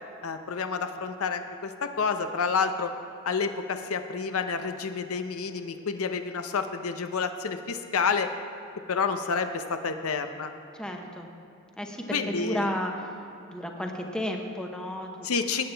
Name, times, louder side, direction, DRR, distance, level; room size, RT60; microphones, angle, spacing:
voice 1, 0.2-2.9 3.2-8.3 8.9-10.5 12.1-12.7 15.2-15.7, left 5 dB, 75° left, 8 dB, 0.6 m, -29 dB
voice 2, 10.7-11.3 11.8-13.1 13.5-15.3, left 1 dB, 5° left, 2 dB, 0.8 m, -32 dB
18.0 x 8.7 x 3.4 m, 2.8 s
head